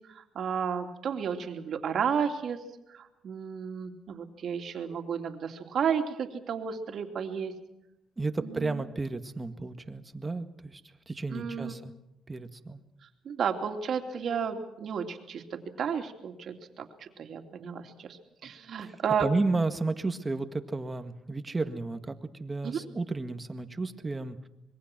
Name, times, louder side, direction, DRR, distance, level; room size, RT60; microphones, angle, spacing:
voice 1, 0.1-2.6 2.9-7.5 8.4-8.8 11.3-11.8 13.2-19.3 22.6-22.9, right 7 dB, 60° right, 4 dB, 2.9 m, -32 dB
voice 2, 8.2-10.8 11.1-11.9 12.3-12.8 18.8-18.9 19.2-24.4, right 3 dB, 20° right, 8 dB, 1.8 m, -32 dB
26.0 x 22.0 x 6.1 m, 0.89 s
cardioid pair, 90°, 0 cm